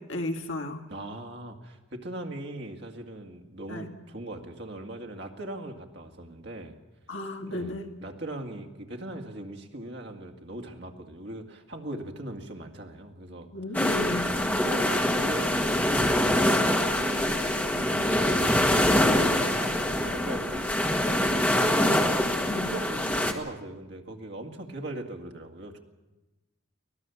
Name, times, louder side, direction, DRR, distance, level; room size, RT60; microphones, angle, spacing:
voice 1, 0.1-0.8 3.7-3.9 7.1-7.9 13.5-14.4 22.0-22.7, left 1 dB, 65° left, 4 dB, 2.0 m, -35 dB
voice 2, 0.9-6.7 7.4-7.7 8.0-13.9 14.2-17.4 17.9-25.8, right 1 dB, 55° right, 2 dB, 2.1 m, -40 dB
sound 1, 13.7-23.3, left 1 dB, 10° left, 1.6 m, -24 dB
24.0 x 18.0 x 7.1 m, 1.1 s
head